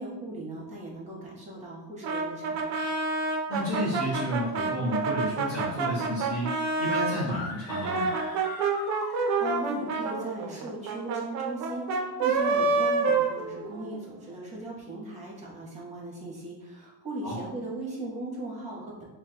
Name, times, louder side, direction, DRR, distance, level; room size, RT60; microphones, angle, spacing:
voice 1, 0.0-2.6 9.1-19.0, right 2 dB, 15° right, -3 dB, 1.0 m, -38 dB
Brass instrument, 2.0-7.2 7.7-14.0, right 4 dB, 40° right, 0.4 m, -28 dB
voice 2, 3.5-8.1 17.2-17.3, equal, 5° left, -11 dB, 1.3 m, -31 dB
sound 1, 7.2-9.8, left 4 dB, 60° left, 0.6 m, -41 dB
5.6 x 2.1 x 2.8 m, 1.1 s
cardioid pair, 160°, 45 cm